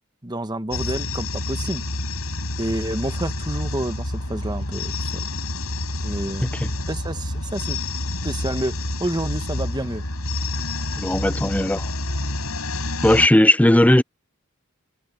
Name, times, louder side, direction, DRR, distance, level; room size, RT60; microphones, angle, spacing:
voice 1, 0.2-1.9 2.6-5.2 6.0-6.5 6.9-7.8 8.2-10.1, right 1 dB, 20° right, 1.2 m, -29 dB
sound 1, 0.7-13.3, left 2 dB, 85° left, 6.1 m, -28 dB
voice 2, 6.4-6.7 11.0-11.9 13.0-14.0, left 1 dB, 5° left, 0.5 m, -17 dB
head